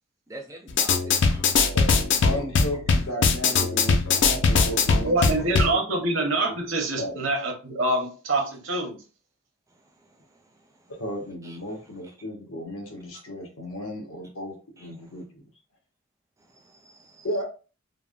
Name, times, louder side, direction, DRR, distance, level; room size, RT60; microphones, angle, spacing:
voice 1, 0.3-1.7 11.4-11.6 14.8-14.9 16.5-17.3, right 2 dB, 15° right, 0.4 m, -45 dB
sound 1, 0.7-5.7, left 4 dB, 55° left, 0.4 m, -21 dB
voice 2, 1.7-6.1 6.9-7.2 11.0-15.4 17.2-17.4, equal, 80° left, 1.1 m, -34 dB
voice 3, 5.0-8.9, right 2 dB, 65° right, 0.8 m, -25 dB
3.4 x 2.1 x 2.4 m
head